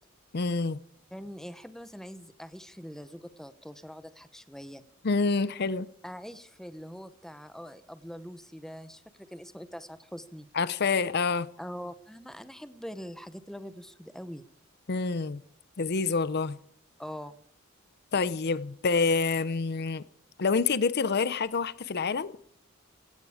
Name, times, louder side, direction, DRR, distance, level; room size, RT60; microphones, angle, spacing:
voice 1, 0.3-0.8 5.0-5.9 10.5-11.5 14.9-15.4 15.8-16.6 18.1-20.0 20.4-22.4, left 4 dB, 55° left, 17 dB, 0.7 m, -27 dB
voice 2, 1.1-4.8 6.0-10.5 11.6-14.4 17.0-17.4, equal, ahead, 12 dB, 1.0 m, -43 dB
17.0 x 16.0 x 5.0 m, 0.66 s
head